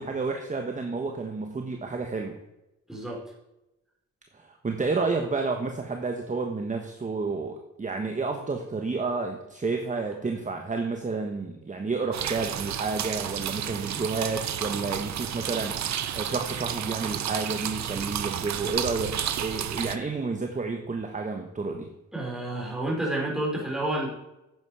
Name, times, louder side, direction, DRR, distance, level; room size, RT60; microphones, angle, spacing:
voice 1, 0.0-2.4 4.3-21.9, right 4 dB, 25° right, 4 dB, 1.2 m, -30 dB
voice 2, 2.9-3.2 22.1-24.1, right 1 dB, ahead, -3 dB, 4.3 m, -29 dB
sound 1, 12.1-20.0, right 9 dB, 65° right, 0.8 m, -31 dB
10.5 x 8.5 x 4.8 m, 0.93 s
cardioid pair, 100°, 30 cm